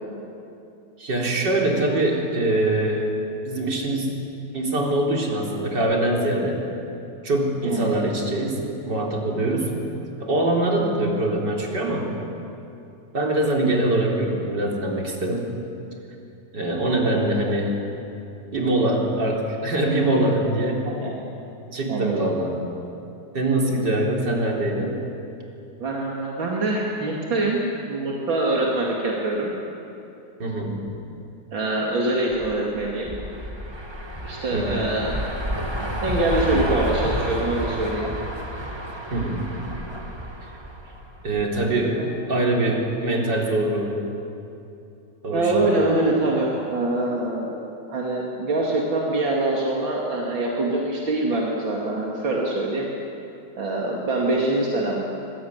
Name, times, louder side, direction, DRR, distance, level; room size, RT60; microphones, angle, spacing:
voice 1, 1.0-3.1 3.4-4.2 4.5-6.6 7.2-9.7 10.2-12.1 13.1-15.5 16.5-17.7 18.5-20.8 21.7-22.5 23.3-25.0 30.4-30.8 34.5-34.8 39.1-39.5 41.2-42.0 42.3-43.9 45.2-45.7, right 1 dB, 60° right, -1 dB, 4.5 m, -23 dB
voice 2, 7.6-8.2 17.0-17.1 20.9-21.1 21.9-22.3 25.8-29.5 31.5-33.2 34.2-35.2 36.0-38.1 41.8-42.1 45.3-47.6 47.9-52.9 53.5-55.1, right 2 dB, 80° right, -3 dB, 3.3 m, -24 dB
sound 1, 32.3-41.6, equal, 15° right, 1.9 m, -30 dB
24.5 x 21.0 x 9.6 m, 2.8 s
omnidirectional pair, 2.1 m